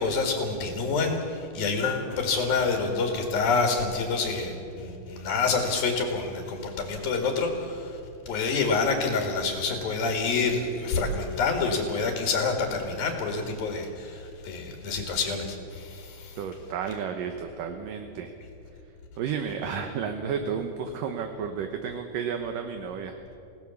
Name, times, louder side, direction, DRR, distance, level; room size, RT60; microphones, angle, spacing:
voice 1, 0.0-7.9 8.3-16.4, left 4 dB, 65° left, 3 dB, 3.9 m, -27 dB
voice 2, 16.4-18.3 19.2-23.2, right 7 dB, 70° right, 6 dB, 2.5 m, -32 dB
28.0 x 18.0 x 7.2 m, 2.8 s
omnidirectional pair, 4.6 m